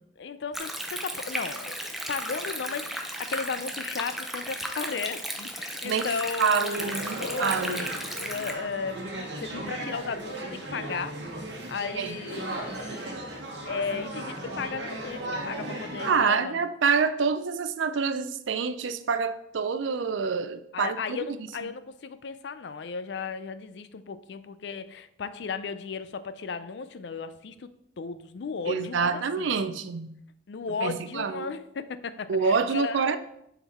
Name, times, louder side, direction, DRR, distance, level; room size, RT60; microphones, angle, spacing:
voice 1, 0.2-11.2 11.7-13.2 13.7-16.6 20.7-27.7 28.0-29.8 30.5-33.2, left 5 dB, 60° left, 13 dB, 0.4 m, -35 dB
Stream, 0.5-8.5, equal, ahead, 0.5 m, -35 dB
voice 2, 6.4-7.9 12.0-12.2 16.1-21.2 28.7-30.2 30.8-31.5 32.3-33.2, right 5 dB, 75° right, 11 dB, 0.4 m, -27 dB
sound 1, 6.7-16.1, right 1 dB, 60° right, 1.1 m, -36 dB
6.9 x 4.0 x 4.3 m, 0.75 s
head